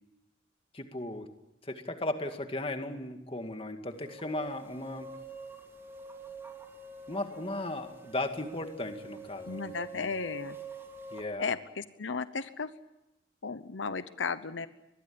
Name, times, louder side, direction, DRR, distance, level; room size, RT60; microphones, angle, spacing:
voice 1, 0.7-1.3 1.7-5.1 7.1-10.1 11.1-11.5, left 1 dB, 30° left, 6 dB, 2.1 m, -36 dB
sound 1, 3.9-11.2, right 2 dB, 15° right, 3.0 m, -46 dB
voice 2, 9.5-10.6 11.4-12.7 13.4-14.7, left 5 dB, 85° left, 13 dB, 0.9 m, -35 dB
24.0 x 21.0 x 8.7 m, 0.90 s
head